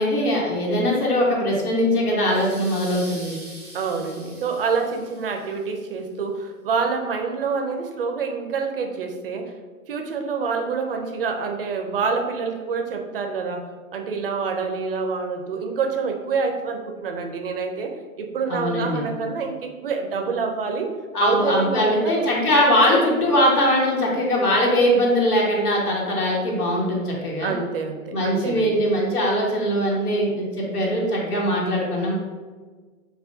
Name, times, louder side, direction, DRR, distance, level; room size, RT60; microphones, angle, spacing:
voice 1, 0.0-3.3 18.5-19.1 21.1-27.5 28.1-32.2, equal, 90° left, -3 dB, 1.2 m, -21 dB
sound 1, 2.3-5.7, equal, ahead, 0.7 m, -43 dB
voice 2, 3.7-9.5 9.9-20.9 21.2-22.3 27.4-28.8, right 5 dB, 40° right, 4 dB, 0.4 m, -27 dB
5.7 x 2.2 x 2.5 m, 1.4 s
hypercardioid pair, 145°, 44 cm